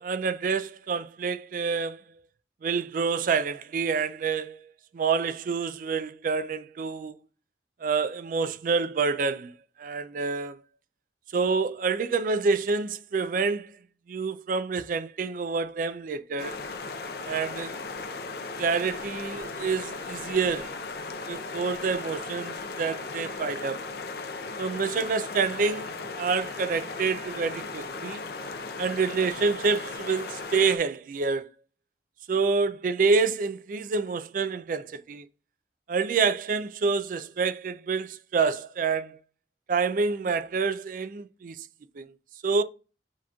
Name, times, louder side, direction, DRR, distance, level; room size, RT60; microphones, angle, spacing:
voice 1, 0.0-2.0 2.6-4.6 4.9-7.1 7.8-9.5 9.8-10.6 11.3-13.7 14.1-16.6 17.3-17.8 18.6-20.8 21.3-23.8 24.6-28.2 28.8-31.5 32.3-35.3 35.9-39.2 39.7-41.7 42.0-42.1 42.4-42.6, right 4 dB, 50° right, 0.3 m, -27 dB
sound 1, 16.4-30.8, left 3 dB, 60° left, 0.5 m, -37 dB
7.1 x 3.0 x 2.3 m
head